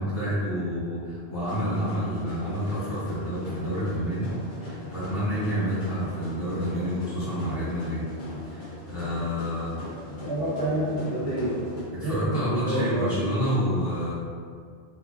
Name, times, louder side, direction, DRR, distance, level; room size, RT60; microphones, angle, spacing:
voice 1, 0.0-4.3 4.6-8.0 8.4-9.7 12.0-14.1, equal, 60° left, -11 dB, 1.6 m, -29 dB
sound 1, 1.4-11.8, left 1 dB, 75° left, 1.4 m, -39 dB
voice 2, 10.2-11.5 12.0-13.3, right 1 dB, 30° right, -8 dB, 0.4 m, -28 dB
3.6 x 3.5 x 2.4 m, 2.1 s
omnidirectional pair, 1.1 m